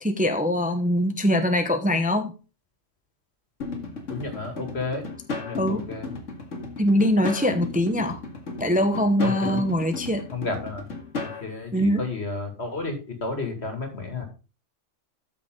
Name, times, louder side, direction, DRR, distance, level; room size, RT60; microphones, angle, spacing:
voice 1, 0.0-2.3 5.6-5.8 6.8-8.2 8.6-10.2 11.7-12.0, equal, 5° right, 7 dB, 0.9 m, -23 dB
sound 1, 3.6-11.4, left 3 dB, 90° left, 2.3 m, -34 dB
voice 2, 4.1-5.1 5.4-6.1 9.2-9.6 10.3-10.9 11.2-14.2, left 3 dB, 60° left, 4 dB, 2.7 m, -32 dB
13.0 x 6.4 x 3.8 m, 0.33 s
omnidirectional pair, 1.3 m